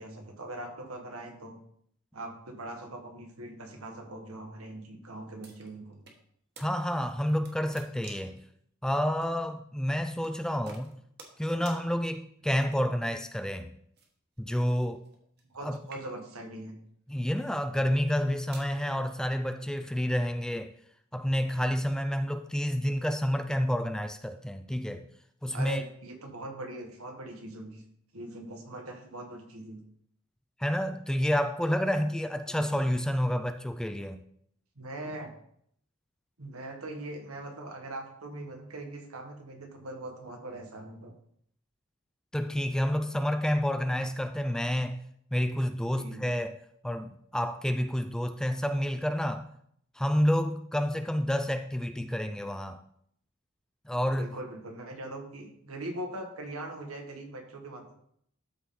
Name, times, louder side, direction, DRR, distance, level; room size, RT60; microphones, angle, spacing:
voice 1, 0.0-1.6 2.1-6.0 15.5-16.8 25.5-27.8 28.1-29.8 32.5-32.6 34.7-35.3 36.4-41.1 45.9-46.2 54.1-57.9, right 1 dB, 90° right, 3 dB, 1.6 m, -41 dB
sound 1, 5.4-6.2 6.6-6.7 7.1-8.4 9.2-9.3 10.2-10.4 10.7-11.4 11.7-11.8 12.5-13.0 14.0-15.6 15.8-16.4 17.1-17.4 18.0-18.7, right 4 dB, 50° right, 1.3 m, -51 dB
voice 2, 6.6-8.4 8.8-10.9 11.4-13.7 14.4-15.0 15.6-15.8 17.1-20.7 21.1-25.0 25.4-25.8 30.6-34.2 42.3-45.0 45.3-46.6 46.8-49.5 50.0-52.8 53.9-54.3, equal, 5° left, 9 dB, 0.3 m, -29 dB
12.5 x 4.3 x 3.8 m, 0.67 s
head